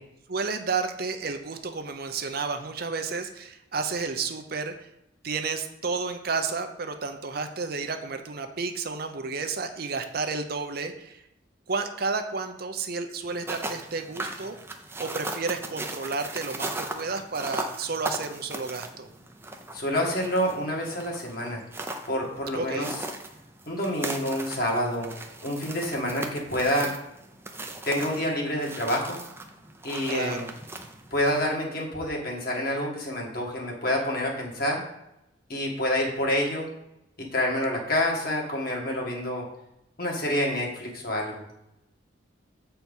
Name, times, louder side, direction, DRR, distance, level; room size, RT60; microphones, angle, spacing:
voice 1, 0.3-4.9 5.2-11.2 11.7-14.6 15.0-19.1 22.5-22.9 30.1-30.5, right 4 dB, 50° right, 7 dB, 0.7 m, -31 dB
sound 1, 13.3-31.5, right 2 dB, 10° right, 0.6 m, -38 dB
voice 2, 19.7-21.6 22.1-22.9 23.7-25.1 25.4-26.9 27.8-29.2 29.8-30.5 31.1-34.8 35.5-36.7 37.3-39.4 40.0-41.4, left 1 dB, 50° left, -1 dB, 1.9 m, -27 dB
7.8 x 4.5 x 5.5 m, 0.84 s
head